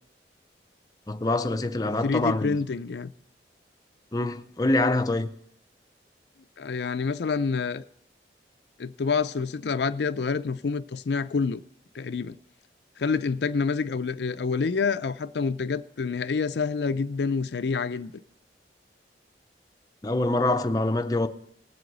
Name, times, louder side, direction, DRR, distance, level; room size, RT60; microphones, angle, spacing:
voice 1, 1.1-2.6 4.1-5.3 20.0-21.3, left 2 dB, 20° left, 0.6 m, -25 dB
voice 2, 2.0-3.1 6.6-7.8 8.8-11.6 11.9-12.4 13.0-18.1, left 5 dB, 70° left, 0.4 m, -27 dB
18.5 x 7.8 x 4.0 m
head